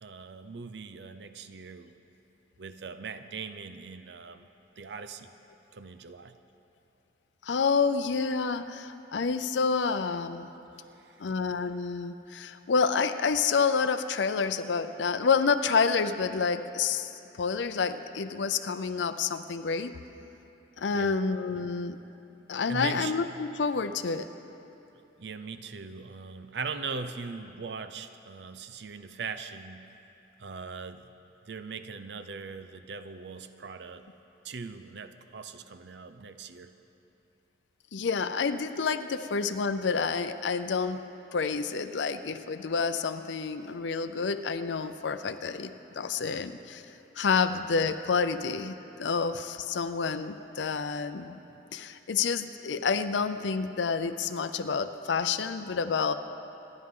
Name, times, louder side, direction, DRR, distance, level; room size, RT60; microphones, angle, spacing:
voice 1, 0.0-1.9 2.6-4.5 4.8-5.3 5.7-6.4 10.8-11.2 20.9-21.2 22.7-23.1 25.2-29.9 30.4-31.1 31.5-34.1 34.4-36.7 46.1-46.2, right 4 dB, 70° right, 10 dB, 0.6 m, -40 dB
voice 2, 7.4-10.5 11.2-17.1 17.4-19.9 20.8-22.0 22.5-24.3 37.9-41.1 41.3-46.8 47.2-51.4 51.7-56.1, left 5 dB, 80° left, 9 dB, 0.5 m, -28 dB
27.0 x 10.5 x 3.8 m, 2.9 s
head